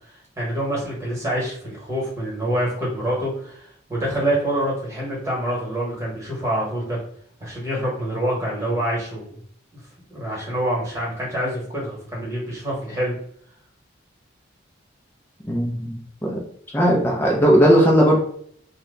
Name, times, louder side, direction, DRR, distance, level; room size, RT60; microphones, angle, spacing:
voice 1, 0.4-7.0 7.4-9.3 10.1-13.2, right 1 dB, 15° right, -4 dB, 1.2 m, -26 dB
voice 2, 15.5-16.4 16.7-18.2, equal, 10° left, -3 dB, 0.5 m, -17 dB
2.9 x 2.2 x 3.8 m, 0.62 s
head